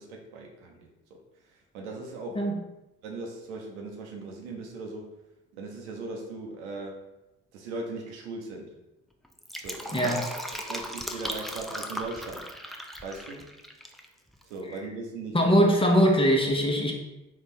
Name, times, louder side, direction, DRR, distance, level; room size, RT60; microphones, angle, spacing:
voice 1, 0.0-2.5 3.0-5.1 5.5-7.0 7.5-8.7 9.6-10.2 10.5-12.5 13.0-13.5 14.4-15.6, right 3 dB, 90° right, 1 dB, 0.7 m, -39 dB
Fill (with liquid), 9.2-14.0 14.3-14.4, equal, ahead, 0.4 m, -37 dB
voice 2, 15.3-16.9, equal, 15° left, 1 dB, 0.9 m, -21 dB
3.6 x 2.4 x 4.2 m, 0.97 s
hypercardioid pair, 50°, 33 cm